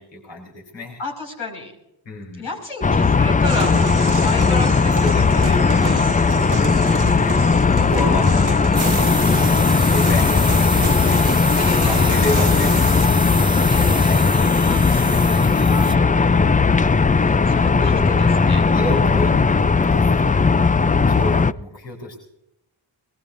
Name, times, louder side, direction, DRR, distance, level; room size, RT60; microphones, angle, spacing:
voice 1, 0.0-1.0 2.1-2.5 5.0-11.3 11.8-13.7 14.0-14.2 16.0-16.3 18.4-20.4 21.1-22.2, left 2 dB, 65° left, -1 dB, 4.0 m, -31 dB
voice 2, 1.0-1.7 2.4-6.1 7.8-8.5 11.6-12.2 13.7-14.3 14.6-16.5 17.2-18.6, left 2 dB, 90° left, -1 dB, 5.7 m, -32 dB
sound 1, 2.8-21.5, left 4 dB, 20° left, 0.5 m, -17 dB
sound 2, 3.4-13.1, right 5 dB, 40° right, 1.2 m, -33 dB
sound 3, 8.7-15.9, right 2 dB, 10° right, 1.4 m, -29 dB
22.5 x 20.5 x 2.6 m, 0.82 s
supercardioid pair, 45°, 48 cm